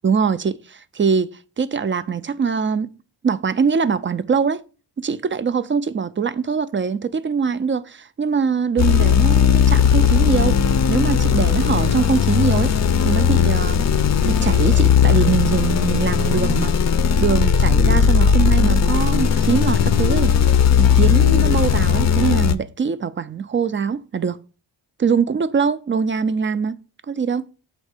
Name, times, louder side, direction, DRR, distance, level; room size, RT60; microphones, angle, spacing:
voice 1, 0.0-2.9 3.2-4.6 5.0-10.6 10.9-12.7 13.0-13.9 14.2-16.7 17.2-20.3 20.8-24.4 25.0-26.8 27.1-27.5, right 6 dB, 30° right, 0.4 m, -22 dB
sound 1, 8.8-22.5, left 7 dB, 40° left, 0.5 m, -17 dB
7.3 x 4.4 x 4.9 m
cardioid pair, 85°, 44 cm